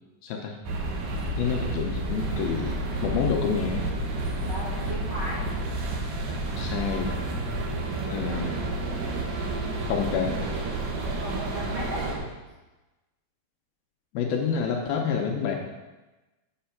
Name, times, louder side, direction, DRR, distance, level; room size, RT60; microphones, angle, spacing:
voice 1, 0.2-0.6 1.4-3.9 6.6-7.2 8.1-8.6 9.9-10.4 14.1-15.6, left 6 dB, 75° left, 2 dB, 2.4 m, -28 dB
sound 1, 0.6-12.2, right 2 dB, 65° right, 2.6 m, -30 dB
voice 2, 4.5-5.5 7.9-8.5 11.2-12.2, right 1 dB, 35° right, -9 dB, 1.9 m, -36 dB
7.9 x 5.7 x 5.8 m, 1.1 s
omnidirectional pair, 4.6 m